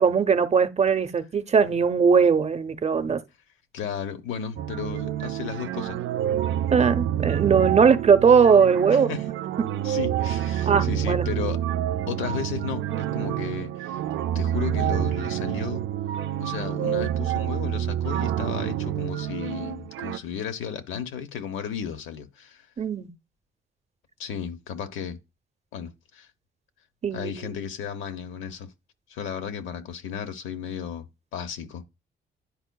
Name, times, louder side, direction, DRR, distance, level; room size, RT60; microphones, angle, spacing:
voice 1, 0.0-3.2 6.7-9.2 9.6-9.7 10.7-11.3 22.8-23.1 27.0-27.6, right 6 dB, 35° right, 0.6 m, -20 dB
voice 2, 3.7-6.0 8.9-9.3 9.8-11.6 12.1-14.0 14.3-15.9 16.4-22.7 24.2-25.2 25.7-26.3 27.1-28.7 29.1-31.1 31.3-31.8, left 8 dB, 85° left, 0.9 m, -34 dB
sound 1, 4.6-20.2, right 11 dB, 75° right, 0.4 m, -28 dB
10.5 x 4.5 x 2.2 m
cardioid pair, 90°, 20 cm